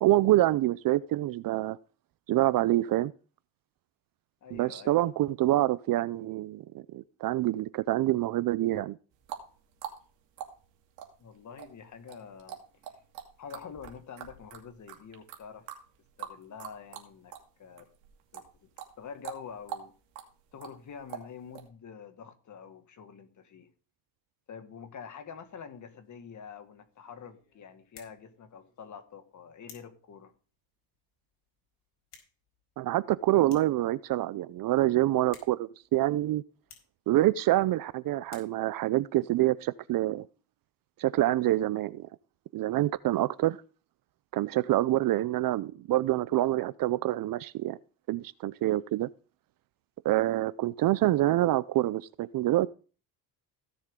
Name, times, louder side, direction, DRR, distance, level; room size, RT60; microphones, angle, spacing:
voice 1, 0.0-1.8 2.3-3.1 4.5-9.0 32.8-36.4 37.1-40.3 41.0-42.1 42.5-43.6 44.3-47.8 48.1-49.1 50.0-52.7, right 15 dB, 50° right, 0.5 m, -26 dB
voice 2, 4.4-5.0 11.2-12.6 13.4-15.7 16.2-17.3 17.6-17.9 18.3-18.7 19.0-19.9 20.5-23.7 24.5-30.3, left 6 dB, 40° left, 1.9 m, -46 dB
sound 1, 9.1-17.5 17.8-21.7, right 9 dB, 85° right, 2.6 m, -44 dB
sound 2, 25.5-38.9, left 7 dB, 75° left, 4.6 m, -60 dB
15.5 x 7.2 x 3.7 m
cardioid pair, 120°, 43 cm